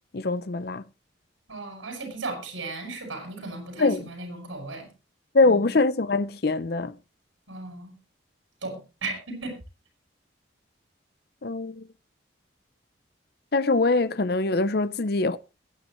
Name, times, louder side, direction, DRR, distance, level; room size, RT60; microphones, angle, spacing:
voice 1, 0.1-0.8 3.8-4.1 5.3-7.0 11.4-11.9 13.5-15.4, left 3 dB, 50° left, 0.7 m, -23 dB
voice 2, 1.5-4.9 5.4-5.7 7.5-7.9 8.6-9.5, right 3 dB, 90° right, 7.0 m, -36 dB
21.5 x 9.4 x 3.1 m
head